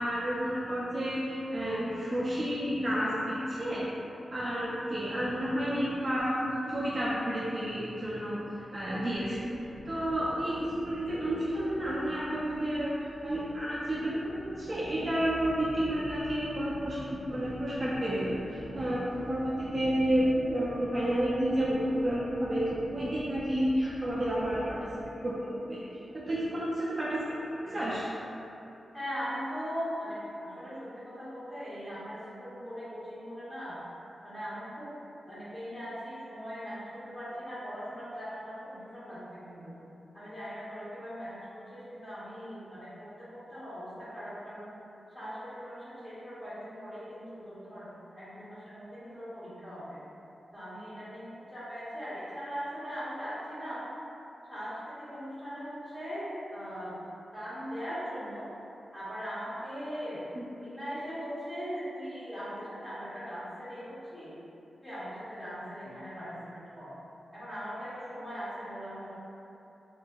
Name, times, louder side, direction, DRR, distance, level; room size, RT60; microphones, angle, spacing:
voice 1, 0.0-3.9 4.3-8.4 8.7-9.5 9.8-28.1 60.3-60.4, equal, 35° right, -8 dB, 0.4 m, -31 dB
sound 1, 9.1-25.0, right 1 dB, 90° right, 0.6 m, -46 dB
voice 2, 28.9-33.8 34.2-34.9 35.3-39.8 40.1-44.7 45.1-50.0 50.5-53.8 54.5-57.0 57.3-58.5 58.9-60.3 60.5-63.8 64.1-64.3 64.8-66.9 67.3-69.1, equal, 15° left, -13 dB, 1.4 m, -40 dB
3.7 x 2.6 x 2.3 m, 2.9 s
wide cardioid pair, 125°, 0 cm